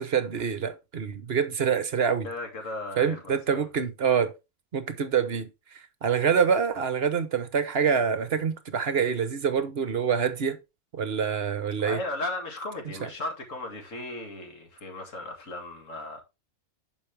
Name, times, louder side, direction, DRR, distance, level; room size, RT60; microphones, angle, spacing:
voice 1, 0.0-2.3 3.0-4.3 4.7-5.5 6.0-10.6 10.9-12.0, right 7 dB, 50° right, 1.1 m, -26 dB
voice 2, 2.2-3.7 11.8-16.2, left 2 dB, 60° left, 2.5 m, -36 dB
10.5 x 5.3 x 3.3 m
omnidirectional pair, 1.5 m